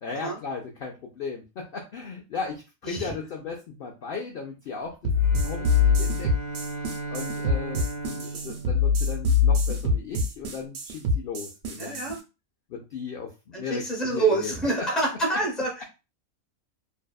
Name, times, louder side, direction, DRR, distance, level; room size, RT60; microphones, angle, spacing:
voice 1, 0.0-5.1 5.4-6.3 7.1-12.1 12.7-14.5, left 5 dB, 65° left, 0 dB, 0.5 m, -36 dB
sound 1, 5.0-12.1, left 4 dB, 80° right, 1.0 m, -24 dB
Bowed string instrument, 5.1-9.7, right 2 dB, 35° left, 1.1 m, -36 dB
voice 2, 11.8-12.2 13.5-15.8, right 2 dB, ahead, -2 dB, 0.5 m, -26 dB
2.6 x 2.1 x 2.2 m, 0.29 s
omnidirectional pair, 1.4 m